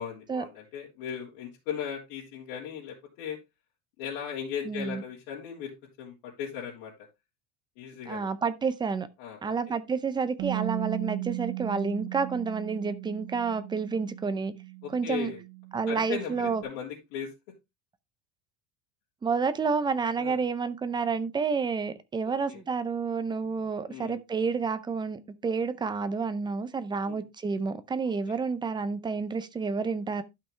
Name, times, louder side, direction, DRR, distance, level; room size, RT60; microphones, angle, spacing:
voice 1, 0.0-3.4 4.0-5.7 6.0-6.9 7.8-8.3 9.2-9.5 14.8-15.4 15.9-17.3 20.2-20.4 22.5-22.6 23.9-24.2 27.0-27.2 28.0-28.4, left 8 dB, 85° left, 3.1 m, -37 dB
voice 2, 4.6-5.0 8.1-9.1 9.4-14.5 14.9-15.3 15.7-16.6 19.2-30.2, right 5 dB, 10° right, 0.5 m, -29 dB
Bass guitar, 10.4-16.6, right 21 dB, 50° right, 1.0 m, -37 dB
12.0 x 5.6 x 3.2 m
cardioid pair, 165°, 38 cm